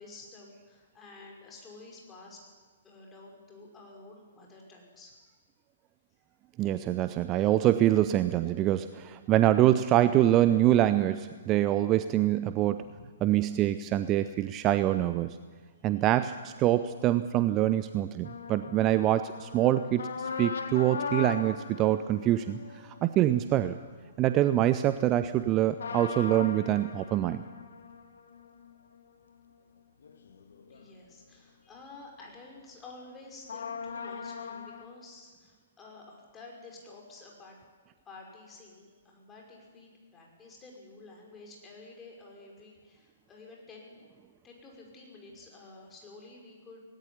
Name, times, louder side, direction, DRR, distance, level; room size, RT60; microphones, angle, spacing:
voice 1, 0.0-2.4 2.8-5.2 12.8-13.0 15.7-15.9 23.4-23.6 25.2-25.5 30.7-37.6 38.1-43.9 44.4-46.8, left 3 dB, 15° left, -1 dB, 5.6 m, -50 dB
voice 2, 6.6-12.8 13.2-15.3 15.8-23.7 24.2-27.4, right 13 dB, 25° right, 12 dB, 0.6 m, -25 dB
sound 1, 18.2-24.1 25.8-31.1 31.5-31.6 33.5-34.8, left 5 dB, 60° left, 1.8 m, -40 dB
18.5 x 17.5 x 9.8 m, 1.5 s
figure-of-eight pair, 120°, 0 cm